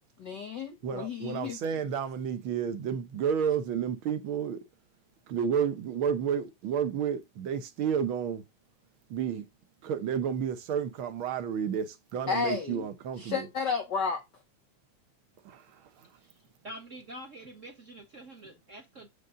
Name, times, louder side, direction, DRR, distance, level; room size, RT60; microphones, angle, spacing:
voice 1, 0.2-1.6 12.3-12.8 13.2-14.2, left 5 dB, 60° left, 1.1 m, -32 dB
voice 2, 0.8-4.6 5.3-8.4 9.1-9.4 9.8-13.5 15.4-16.1, right 8 dB, 70° right, 1.3 m, -31 dB
voice 3, 16.6-19.1, right 1 dB, 35° right, 1.5 m, -46 dB
8.1 x 5.4 x 3.8 m
omnidirectional pair, 3.5 m